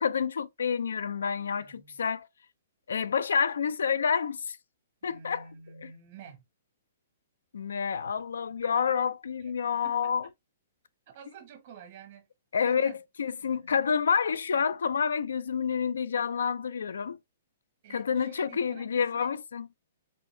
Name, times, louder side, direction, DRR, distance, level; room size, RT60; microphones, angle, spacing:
voice 1, 0.0-2.3 2.9-4.6 5.0-5.4 5.8-5.9 7.5-10.3 12.5-12.9 13.2-17.2 17.9-19.7, left 6 dB, 85° left, 0.4 m, -28 dB
voice 2, 1.6-2.0 5.0-6.4 9.4-9.5 9.8-10.3 11.1-12.3 12.6-13.0 13.4-13.8 17.8-19.3, right 7 dB, 55° right, 1.4 m, -50 dB
4.4 x 2.6 x 3.2 m
hypercardioid pair, 145°, 0 cm